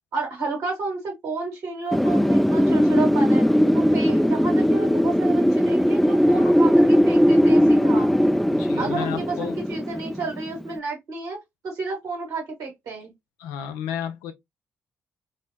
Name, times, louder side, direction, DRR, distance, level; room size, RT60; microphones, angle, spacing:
voice 1, 0.1-3.4 3.7-8.1 8.8-11.4 11.6-13.1, right 3 dB, 70° right, 1.4 m, -31 dB
Wind, 1.9-10.6, equal, ahead, 0.3 m, -19 dB
voice 2, 8.5-9.6 13.4-14.3, left 9 dB, 75° left, 0.4 m, -32 dB
3.1 x 2.0 x 2.7 m
hypercardioid pair, 40°, 6 cm